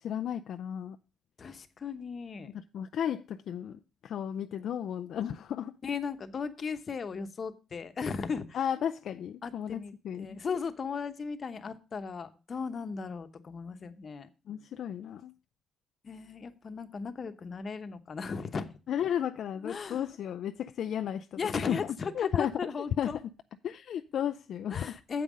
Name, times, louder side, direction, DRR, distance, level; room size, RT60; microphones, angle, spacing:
voice 1, 0.0-1.0 2.5-5.7 8.5-9.8 10.0-10.4 14.5-15.3 18.9-21.4 21.7-22.5 23.0-23.1 23.6-25.0, left 9 dB, 70° left, 0.4 m, -34 dB
voice 2, 1.4-2.5 5.8-8.6 9.4-14.3 16.0-18.7 19.6-20.1 21.4-23.2 24.7-25.2, left 5 dB, 45° left, 0.9 m, -36 dB
7.7 x 5.4 x 6.1 m
cardioid pair, 90°, 0 cm